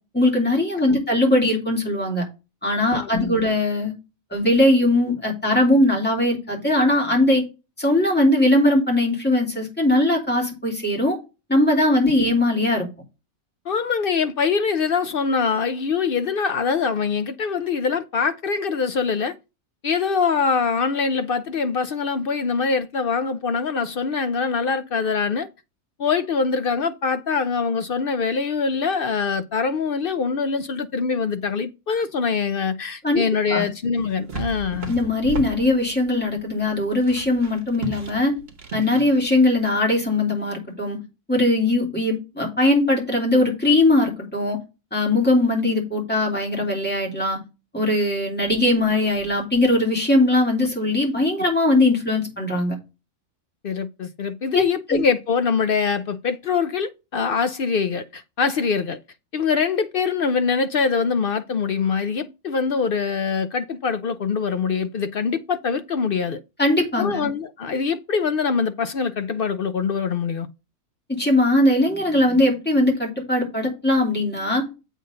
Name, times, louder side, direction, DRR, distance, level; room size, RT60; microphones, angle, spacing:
voice 1, 0.1-2.2 2.6-3.9 4.3-7.4 7.8-11.2 11.5-12.9 33.0-33.2 33.5-33.7 34.9-38.3 38.7-41.0 41.3-44.6 44.9-47.4 47.7-52.7 54.5-54.6 54.9-55.0 66.6-67.3 71.1-74.6, left 1 dB, 5° left, 3.1 m, -20 dB
voice 2, 2.9-3.4 13.7-19.3 19.8-25.5 26.0-35.0 53.6-59.0 59.3-66.4 67.0-70.5, left 5 dB, 60° left, 0.5 m, -23 dB
sound 1, 34.0-39.7, right 3 dB, 45° right, 1.8 m, -36 dB
7.9 x 3.7 x 6.6 m
omnidirectional pair, 1.5 m